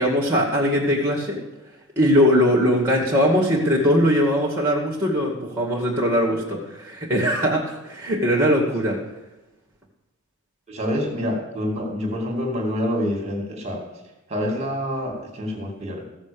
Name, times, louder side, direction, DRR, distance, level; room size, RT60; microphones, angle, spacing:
voice 1, 0.0-1.4 2.0-9.0, equal, 10° right, -2 dB, 2.2 m, -20 dB
voice 2, 10.7-13.8 14.3-16.1, equal, 30° right, 1 dB, 2.5 m, -27 dB
15.0 x 7.2 x 7.1 m, 1.0 s
head